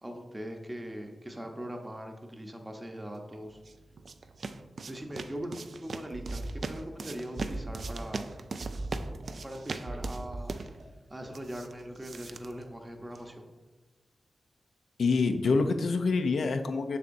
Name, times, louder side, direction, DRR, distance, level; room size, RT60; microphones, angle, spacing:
voice 1, 0.0-3.6 4.9-5.5 5.8-8.3 9.4-10.6 11.1-13.5, equal, 15° right, 3 dB, 0.7 m, -41 dB
sound 1, 3.3-13.3, right 4 dB, 55° right, 0.3 m, -41 dB
sound 2, 6.1-7.1 7.4-8.3 8.6-9.6 9.9-10.8, right 2 dB, 75° right, 1.3 m, -38 dB
voice 2, 15.0-17.0, left 4 dB, 80° left, 7 dB, 0.5 m, -26 dB
7.1 x 6.7 x 2.6 m, 1.2 s
wide cardioid pair, 135°, 0 cm